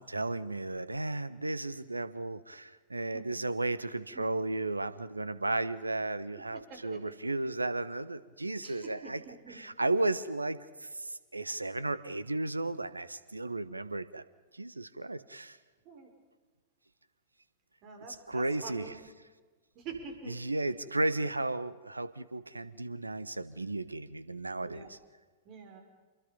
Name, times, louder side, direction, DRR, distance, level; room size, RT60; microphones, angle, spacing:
voice 1, 0.0-9.2 9.5-14.2 14.5-15.6 18.1-19.0 20.3-25.0, right 2 dB, 85° right, 16 dB, 1.2 m, -34 dB
voice 2, 3.1-3.5 4.1-4.2 6.5-7.0 8.6-9.6 15.8-16.1 17.8-18.9 19.8-20.4 24.6-25.0 25.4-25.8, right 5 dB, 40° right, 4 dB, 5.7 m, -46 dB
28.0 x 22.5 x 5.3 m, 1.3 s
figure-of-eight pair, 100°, 0 cm